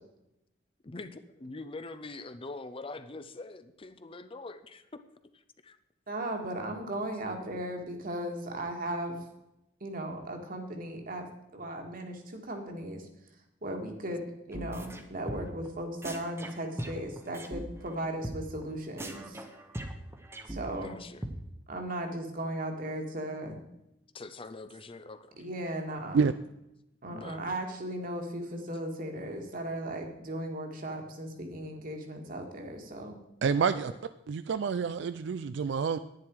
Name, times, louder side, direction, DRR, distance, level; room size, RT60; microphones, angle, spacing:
voice 1, 0.8-4.9 5.3-5.8 20.7-21.2 24.1-25.5 27.1-27.4 33.7-34.0, left 3 dB, 30° left, 10 dB, 0.6 m, -44 dB
voice 2, 6.1-9.2 9.8-11.2 11.5-13.1 13.6-19.4 20.5-21.0 21.7-23.6 25.4-26.3 27.0-33.2, right 1 dB, 50° right, 3 dB, 1.9 m, -37 dB
sound 1, 14.5-15.0 15.3-15.7 16.0-17.6 17.9-18.0 18.2-18.4 18.6-18.7 19.0-20.9 21.2-21.3, right 1 dB, 15° right, 1.1 m, -39 dB
voice 3, 33.4-33.9 34.3-36.0, right 5 dB, 70° right, 12 dB, 0.4 m, -28 dB
10.5 x 9.9 x 4.7 m, 0.88 s
head